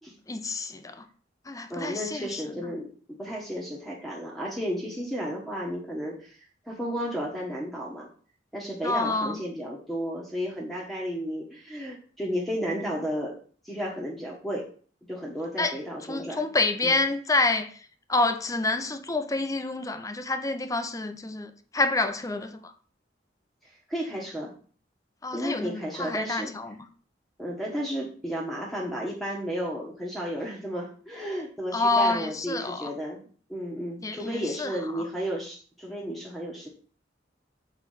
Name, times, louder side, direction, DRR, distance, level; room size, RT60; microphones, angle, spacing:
voice 1, 0.3-1.0 1.5-2.4 8.8-9.4 15.6-15.7 16.1-17.7 18.1-22.7 25.2-26.8 31.7-32.9 34.0-35.0, left 2 dB, 20° left, 0.7 m, -28 dB
voice 2, 1.7-6.4 6.7-8.1 8.5-13.4 13.6-14.7 15.1-16.4 16.8-17.0 23.9-24.5 25.3-26.5 27.4-33.2 33.5-36.7, equal, ahead, 1.3 m, -33 dB
7.1 x 4.1 x 5.6 m
head